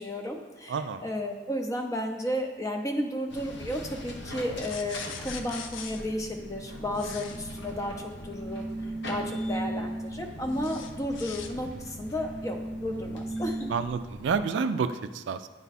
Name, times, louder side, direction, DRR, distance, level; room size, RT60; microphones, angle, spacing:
voice 1, 0.0-7.9 8.2-8.6 9.1-13.7, equal, 15° left, 3 dB, 0.6 m, -33 dB
voice 2, 0.7-1.0 13.7-15.5, right 5 dB, 65° right, 11 dB, 0.3 m, -29 dB
sound 1, 3.3-14.4, right 1 dB, 65° left, 0.9 m, -38 dB
sound 2, 4.6-6.0 6.9-7.4 10.6-11.5, left 7 dB, 90° left, 0.5 m, -41 dB
9.0 x 3.5 x 4.1 m, 1.4 s
head